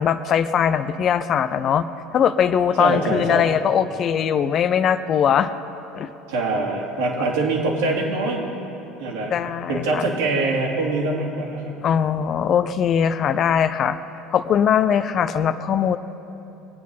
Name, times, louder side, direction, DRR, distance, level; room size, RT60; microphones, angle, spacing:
voice 1, 0.0-1.9 2.1-5.5 5.9-6.1 9.3-10.0 11.8-14.0 14.3-16.0, left 8 dB, 45° left, 12 dB, 0.6 m, -20 dB
voice 2, 2.8-3.5 6.3-8.4 9.0-9.3 9.7-11.7, right 2 dB, 65° right, -1 dB, 2.6 m, -23 dB
22.0 x 9.3 x 5.6 m, 2.9 s
figure-of-eight pair, 70°, 0 cm